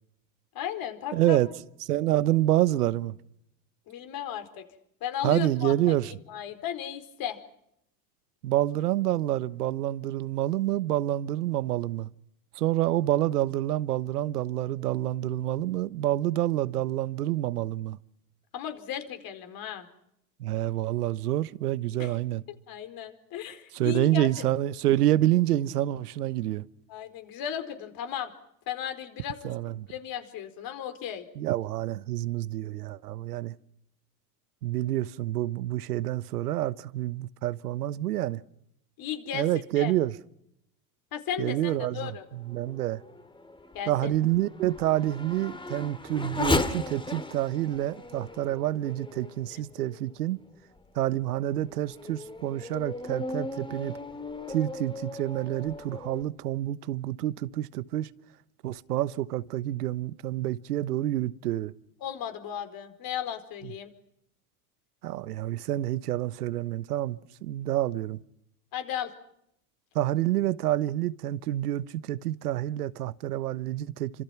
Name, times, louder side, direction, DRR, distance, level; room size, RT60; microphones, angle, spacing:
voice 1, 0.5-1.4 3.9-4.6 5.0-5.9 6.3-7.4 18.5-19.9 22.0-22.1 22.7-24.3 26.9-28.3 28.7-29.5 29.9-31.2 39.0-39.5 39.8-39.9 41.1-42.2 43.7-44.1 62.0-63.9 68.7-69.1, left 9 dB, 50° left, 4.6 m, -35 dB
voice 2, 1.1-1.5 1.9-3.2 5.2-6.1 8.4-12.1 12.5-18.0 20.4-22.4 23.7-26.6 29.4-29.9 31.4-33.5 34.6-38.4 39.3-40.1 41.4-43.0 43.9-50.4 50.9-53.9 54.5-58.1 58.6-61.7 65.0-68.2 69.9-74.2, right 14 dB, 85° right, 1.2 m, -28 dB
Race car auto racing / Accelerating revving vroom, 42.2-50.1 50.8-50.9 51.5-56.2, left 2 dB, 10° left, 2.4 m, -36 dB
29.0 x 26.0 x 6.0 m
hypercardioid pair, 90°, 45 cm